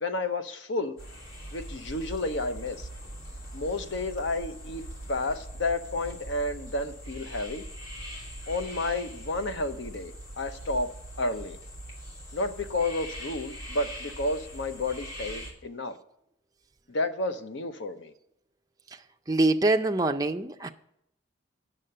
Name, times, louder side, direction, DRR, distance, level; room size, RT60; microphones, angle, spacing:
voice 1, 0.0-1.0 1.5-2.9 3.5-4.8 5.1-7.6 8.5-10.9 11.2-11.6 12.3-16.0 16.9-18.1, left 2 dB, 60° left, 0.8 m, -31 dB
sound 1, 1.0-15.5, equal, 85° left, 2.8 m, -42 dB
voice 2, 19.3-20.7, right 2 dB, 15° right, 0.5 m, -24 dB
9.0 x 6.7 x 6.6 m
head